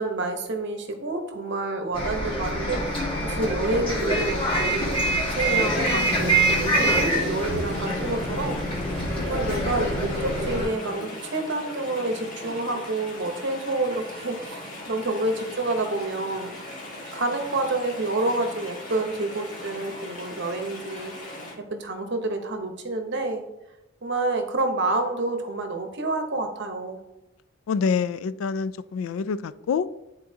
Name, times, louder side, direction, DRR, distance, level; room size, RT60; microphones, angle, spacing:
voice 1, 0.0-8.6 9.2-16.5 17.1-21.1 21.6-23.4 24.0-27.0, right 2 dB, 60° right, 0.9 m, -28 dB
Bus, 1.9-10.7, right 1 dB, 25° left, 1.4 m, -25 dB
Chatter / Stream, 5.2-21.5, left 1 dB, 40° left, 1.6 m, -37 dB
voice 2, 27.7-29.9, left 6 dB, 85° left, 0.3 m, -26 dB
10.0 x 4.1 x 2.8 m
head